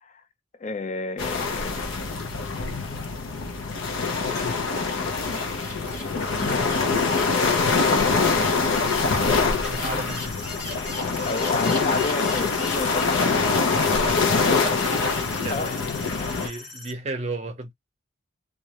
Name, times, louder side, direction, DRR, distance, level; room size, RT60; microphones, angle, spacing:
voice 1, 0.6-1.8 3.9-4.6 4.9-5.8 7.1-8.3 11.2-13.2 15.5-15.8 16.2-16.7, left 3 dB, 40° left, 0.4 m, -33 dB
sound 1, 1.2-16.5, left 4 dB, 85° left, 0.5 m, -24 dB
sound 2, 4.0-15.6, left 2 dB, 60° left, 1.0 m, -39 dB
voice 2, 9.6-10.2 14.3-15.2 15.4-15.7 16.2-17.7, right 2 dB, 35° right, 0.6 m, -34 dB
sound 3, 10.1-16.9, left 1 dB, ahead, 0.8 m, -43 dB
2.3 x 2.0 x 2.8 m
head